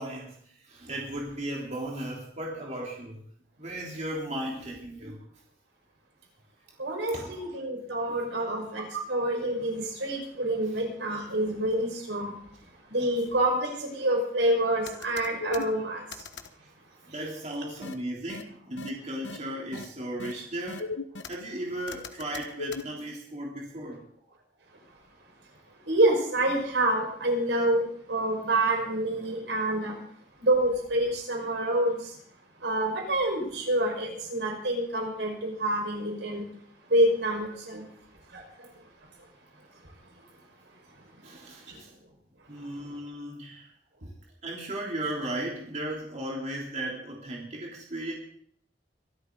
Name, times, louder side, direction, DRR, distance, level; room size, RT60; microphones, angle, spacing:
voice 1, 0.0-3.2 3.6-5.2 7.1-7.5 8.1-8.2 8.5-8.6 16.6-16.7 17.0-20.9 21.3-24.0 41.2-41.9 42.5-43.7 44.4-48.1, right 1 dB, 40° right, -2 dB, 3.4 m, -36 dB
voice 2, 6.8-12.4 12.9-16.3 25.8-30.0 30.4-32.2 32.6-36.5 36.9-37.9 38.3-38.9 39.2-39.3 39.8-39.9 40.9-41.3 41.7-41.8, right 1 dB, 80° right, 1 dB, 5.3 m, -27 dB
sound 1, 14.9-15.7 16.1-16.5 17.8-17.9 18.3-18.4 18.8-18.9 19.2-19.4 19.7-19.8 20.2-20.3 20.7-21.3 21.9-22.8, left 4 dB, 85° left, 1.2 m, -36 dB
23.5 x 12.5 x 4.0 m, 0.63 s
head